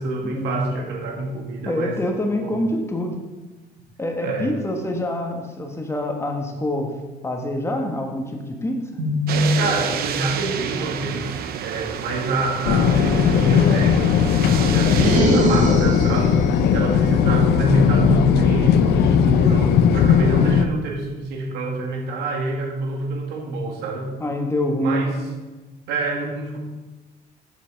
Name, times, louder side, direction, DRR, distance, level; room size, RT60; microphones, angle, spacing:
voice 1, 0.0-2.0 2.4-2.6 4.2-4.5 9.0-16.4 16.7-24.1 24.8-25.2 25.9-26.6, right 2 dB, 90° right, 1 dB, 2.1 m, -26 dB
voice 2, 1.6-3.1 4.0-6.9 7.2-8.8 24.2-25.0, left 1 dB, 15° left, 3 dB, 1.5 m, -25 dB
sound 1, 9.3-15.2, right 8 dB, 65° right, 0.8 m, -29 dB
sound 2, 12.6-20.7, left 7 dB, 75° left, 0.7 m, -17 dB
sound 3, 14.8-16.4, right 2 dB, 45° right, 2.1 m, -21 dB
8.2 x 7.3 x 5.2 m, 1.2 s
cardioid pair, 110°, 17 cm